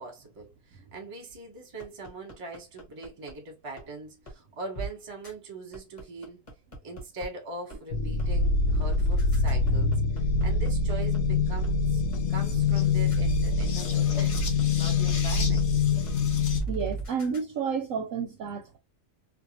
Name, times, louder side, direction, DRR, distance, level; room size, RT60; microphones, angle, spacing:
voice 1, 0.0-6.4 6.8-9.9 10.4-12.0 12.3-15.7, right 3 dB, 30° right, 0.7 m, -41 dB
sound 1, 1.8-3.3 3.8-3.9 4.3-4.4 4.7-4.9 5.2-5.3 5.7-7.3 7.7-7.8 8.2-8.3 8.7-11.2 11.6-11.7 12.1-12.2 12.6-12.7 13.1-13.2 13.6-15.1 15.6-15.7 16.1-16.2 16.5-17.4, right 3 dB, 30° left, 0.8 m, -38 dB
sound 2, 7.9-16.6, left 4 dB, 60° left, 0.8 m, -25 dB
voice 2, 16.7-18.8, right 6 dB, 70° right, 0.8 m, -31 dB
2.6 x 2.3 x 2.8 m
omnidirectional pair, 1.7 m